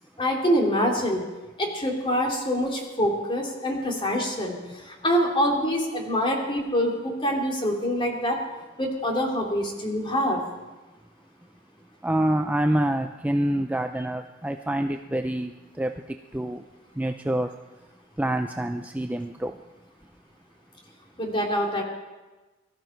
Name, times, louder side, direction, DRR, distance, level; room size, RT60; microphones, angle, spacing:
voice 1, 0.2-1.2 1.6-8.4 8.8-10.4 21.2-21.8, equal, 25° left, 3.0 m, -25 dB
voice 2, 12.0-16.7 17.0-17.6 18.2-19.6, right 1 dB, 10° right, 0.5 m, -27 dB
23.0 x 13.5 x 4.5 m
head